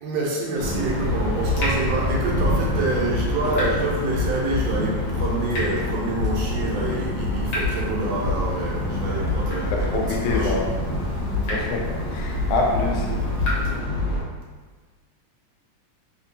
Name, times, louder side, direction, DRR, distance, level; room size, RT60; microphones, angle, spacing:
voice 1, 0.0-10.5, right 2 dB, 75° right, -4 dB, 1.7 m, -27 dB
sound 1, 0.6-14.2, left 1 dB, 40° left, 1.2 m, -26 dB
Water tap faucet / Drip, 0.9-13.8, left 1 dB, 60° left, 1.5 m, -35 dB
voice 2, 9.7-10.7 11.5-13.2, left 3 dB, 85° left, 0 dB, 2.1 m, -26 dB
4.3 x 3.5 x 2.7 m, 1.4 s
omnidirectional pair, 3.4 m